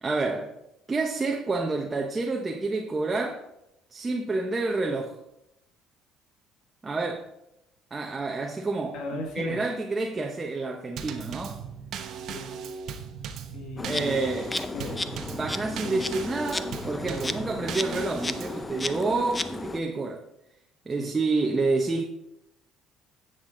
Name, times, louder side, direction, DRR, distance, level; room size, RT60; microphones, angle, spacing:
voice 1, 0.0-0.6 0.9-3.4 3.9-5.2 6.8-7.3 7.9-11.6 13.8-14.5 15.3-20.2 20.9-22.0, right 3 dB, 20° right, 0.9 m, -29 dB
voice 2, 8.9-9.6 12.2-12.5 13.5-15.1 15.8-16.0 21.0-21.1, left 3 dB, 70° left, 2.0 m, -38 dB
Drum kit / Snare drum / Bass drum, 11.0-18.6, right 7 dB, 60° right, 1.0 m, -38 dB
Insect, 13.8-19.8, left 3 dB, 20° left, 0.6 m, -34 dB
10.5 x 7.9 x 3.8 m
cardioid pair, 100°, 0 cm